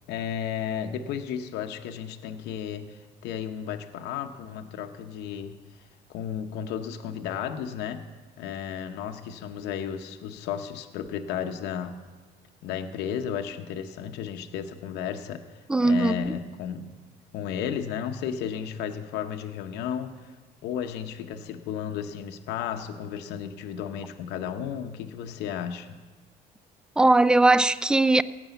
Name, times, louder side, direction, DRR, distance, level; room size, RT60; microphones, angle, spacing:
voice 1, 0.1-5.6 6.1-8.1 8.4-12.0 12.6-15.4 15.8-16.9 17.3-20.3 20.6-26.0, left 8 dB, 85° left, 0.8 m, -33 dB
voice 2, 15.7-16.3 27.0-28.2, right 2 dB, 5° right, 0.3 m, -19 dB
17.0 x 6.1 x 8.1 m
cardioid pair, 110°, 17 cm